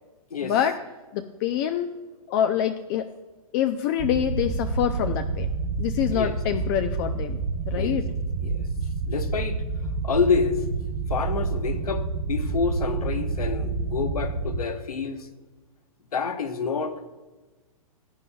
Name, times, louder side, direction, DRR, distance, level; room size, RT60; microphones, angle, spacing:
voice 1, 0.4-0.8 1.1-1.9 2.3-3.1 3.5-5.5 5.8-8.1, left 10 dB, 40° left, 8 dB, 0.5 m, -26 dB
sound 1, 4.0-14.6, right 4 dB, 60° right, 1.4 m, -28 dB
voice 2, 9.1-9.6 10.0-10.6 11.1-15.3 16.1-17.0, left 5 dB, 90° left, 7 dB, 1.2 m, -27 dB
17.0 x 8.4 x 2.3 m, 1.2 s
hypercardioid pair, 130°, 19 cm